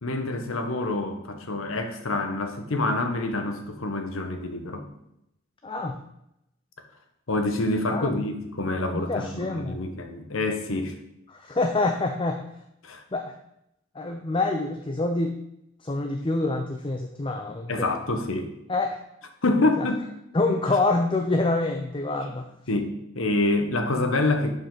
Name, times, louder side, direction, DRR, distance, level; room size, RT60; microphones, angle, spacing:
voice 1, 0.0-4.9 7.3-11.0 12.8-13.0 17.7-18.5 19.4-20.1 22.7-24.6, left 2 dB, 80° left, 6 dB, 1.1 m, -27 dB
voice 2, 5.6-6.0 7.9-8.1 8.9-9.8 11.3-12.4 13.1-13.3 13.9-15.4 15.8-17.9 18.7-19.0 19.8-19.9 20.3-22.5, left 2 dB, 25° left, 5 dB, 0.5 m, -26 dB
11.0 x 5.2 x 3.9 m, 0.82 s
head